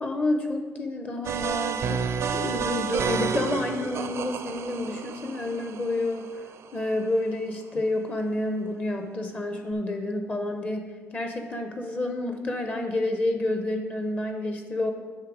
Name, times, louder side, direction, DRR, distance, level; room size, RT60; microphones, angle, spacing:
voice 1, 0.0-2.0 2.3-6.3 6.7-14.9, left 2 dB, 30° left, 5 dB, 0.7 m, -29 dB
sound 1, 1.2-7.1, right 6 dB, 55° right, 0.4 m, -31 dB
9.7 x 3.5 x 6.1 m, 1.4 s
cardioid pair, 165°, 5 cm